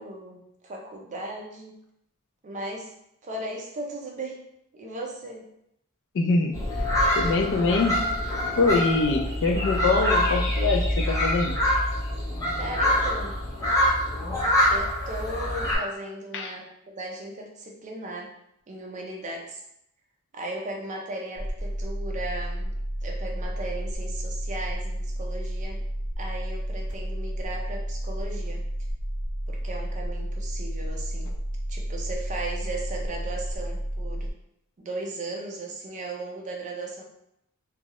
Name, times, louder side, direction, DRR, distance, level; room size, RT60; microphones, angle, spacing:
voice 1, 0.0-1.8 2.4-2.9 3.2-4.4 4.7-5.4 12.6-13.4 14.7-18.3 18.7-19.6 20.3-22.7 23.0-25.8 26.2-28.6 29.5-31.3 31.7-34.3 34.8-37.0, right 2 dB, 35° right, -1 dB, 0.4 m, -36 dB
voice 2, 6.1-6.6 7.1-8.0 8.3-11.6 16.3-16.5, left 3 dB, 60° left, 3 dB, 0.4 m, -24 dB
sound 1, 6.5-15.8, left 1 dB, 15° left, 0.6 m, -25 dB
sound 2, 21.4-34.3, equal, 75° right, 0.8 m, -31 dB
2.3 x 2.0 x 2.8 m, 0.77 s
head